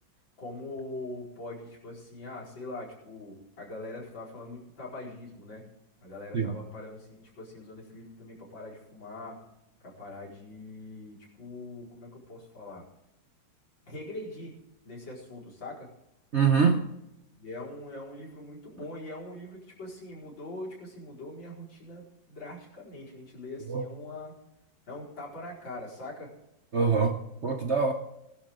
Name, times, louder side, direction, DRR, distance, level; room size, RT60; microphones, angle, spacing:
voice 1, 0.4-5.7 6.0-9.4 9.8-12.8 13.8-14.6 14.9-15.9 17.3-24.3 24.9-26.3, left 2 dB, 70° left, -5 dB, 5.7 m, -42 dB
voice 2, 16.3-16.9 23.7-23.8 26.7-27.9, right 5 dB, 45° right, 5 dB, 1.0 m, -24 dB
21.0 x 11.5 x 3.8 m, 0.86 s
omnidirectional pair, 2.2 m